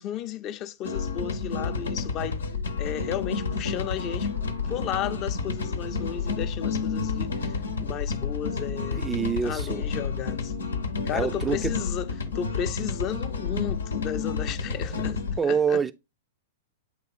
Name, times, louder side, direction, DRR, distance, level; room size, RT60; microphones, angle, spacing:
voice 1, 0.0-2.4 2.8-4.3 4.7-9.0 9.4-10.5 11.0-15.2 15.5-15.8, left 10 dB, 35° left, 0.6 m, -34 dB
sound 1, 0.8-15.4, left 4 dB, 90° left, 0.8 m, -30 dB
voice 2, 8.9-9.8 11.1-11.7 14.7-15.9, right 6 dB, 15° right, 0.4 m, -27 dB
8.1 x 3.0 x 4.2 m
hypercardioid pair, 115°, 0 cm